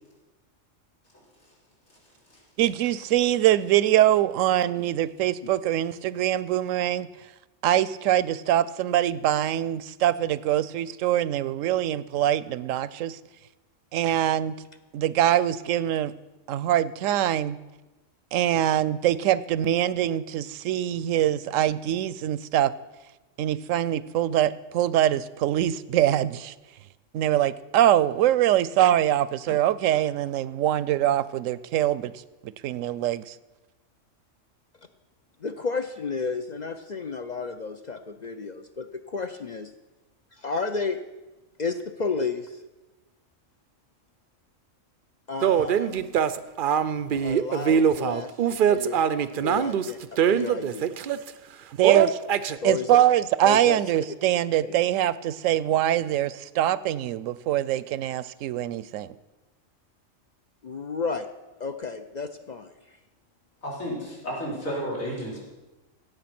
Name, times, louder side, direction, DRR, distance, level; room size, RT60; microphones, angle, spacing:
voice 1, 2.6-7.1 7.6-13.2 13.9-14.5 14.9-16.1 16.5-17.6 18.3-22.7 23.4-26.5 27.1-32.1 32.4-33.3 51.8-52.2 52.6-59.1, right 12 dB, 75° right, 18 dB, 0.9 m, -23 dB
voice 2, 35.4-39.7 40.3-41.0 41.6-42.6 45.3-46.2 47.1-49.0 49.4-50.9 52.6-52.9 53.4-53.8 54.7-54.8 60.6-61.3 61.6-63.0, left 4 dB, 55° left, 8 dB, 0.5 m, -32 dB
sound 1, 45.4-51.3 51.8-52.6, right 8 dB, 60° right, 0.5 m, -23 dB
voice 3, 63.6-65.4, equal, 85° left, -5 dB, 4.7 m, -32 dB
16.5 x 7.8 x 5.9 m, 1.1 s
omnidirectional pair, 1.4 m